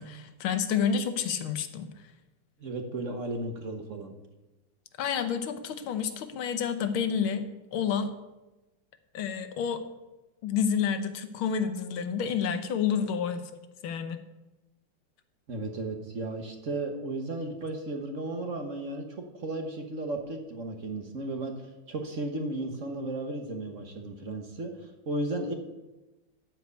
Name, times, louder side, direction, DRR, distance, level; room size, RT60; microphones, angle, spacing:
voice 1, 0.0-1.9 5.0-7.4 7.7-8.1 9.1-9.8 10.4-13.5 13.8-14.2, left 7 dB, 90° left, 9 dB, 1.8 m, -29 dB
voice 2, 2.6-4.1 15.5-25.5, right 2 dB, 45° right, 4 dB, 1.3 m, -34 dB
13.5 x 4.8 x 8.1 m, 1.0 s
omnidirectional pair, 2.2 m